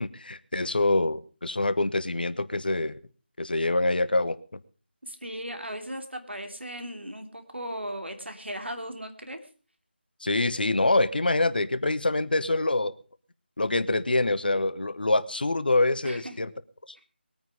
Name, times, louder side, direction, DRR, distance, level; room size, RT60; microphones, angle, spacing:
voice 1, 0.0-3.0 3.4-4.6 10.2-12.9 13.6-16.5 16.9-17.0, left 2 dB, 55° left, 15 dB, 1.0 m, -25 dB
voice 2, 5.0-9.4 16.0-16.3, equal, 80° right, 7 dB, 3.0 m, -37 dB
20.5 x 9.2 x 5.0 m, 0.37 s
figure-of-eight pair, 165°, 6 cm